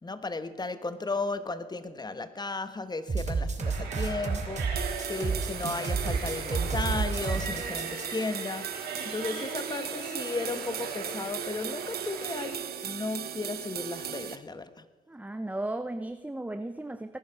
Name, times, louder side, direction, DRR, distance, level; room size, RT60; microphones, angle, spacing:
voice 1, 0.0-14.8, left 3 dB, 25° left, 12 dB, 1.2 m, -35 dB
sound 1, 3.1-8.1, right 4 dB, 45° right, 2.3 m, -30 dB
sound 2, 3.6-12.5, right 4 dB, 90° right, 3.7 m, -39 dB
sound 3, 4.8-14.4, right 10 dB, 70° right, 0.9 m, -38 dB
voice 2, 15.1-17.2, right 1 dB, 10° right, 10 dB, 0.6 m, -35 dB
19.0 x 10.5 x 5.2 m, 1.3 s
supercardioid pair, 60°, 17 cm